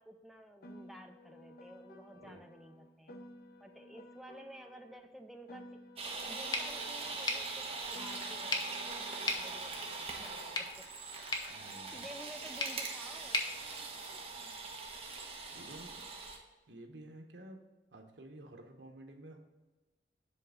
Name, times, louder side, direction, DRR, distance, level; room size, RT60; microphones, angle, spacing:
voice 1, 0.0-3.2 3.6-5.8 6.2-10.9 11.9-13.4, equal, ahead, 4 dB, 0.3 m, -53 dB
Piano, 0.6-5.1 5.5-10.1, equal, 55° left, 0.6 m, -54 dB
sound 1, 6.0-16.4, right 3 dB, 35° right, 1.0 m, -42 dB
sound 2, 6.5-14.6, left 3 dB, 25° left, 0.7 m, -41 dB
voice 2, 11.5-12.1 15.5-16.1 16.7-17.6 17.9-19.4, right 1 dB, 80° right, 3 dB, 1.1 m, -52 dB
7.6 x 3.5 x 6.5 m, 1.1 s
head